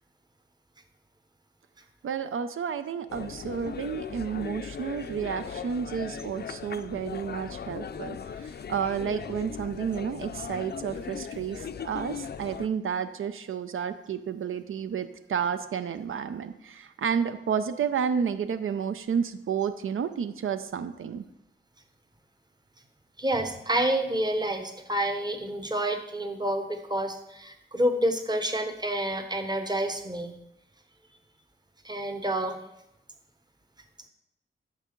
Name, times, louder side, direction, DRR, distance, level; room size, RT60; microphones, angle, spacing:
voice 1, 2.0-21.2, right 7 dB, 85° right, 11 dB, 0.5 m, -31 dB
sound 1, 3.1-12.7, left 7 dB, 55° left, 0.4 m, -38 dB
voice 2, 23.2-30.3 31.8-32.6, right 1 dB, 20° right, 6 dB, 0.9 m, -28 dB
8.2 x 6.6 x 5.1 m, 0.83 s
wide cardioid pair, 140°, 21 cm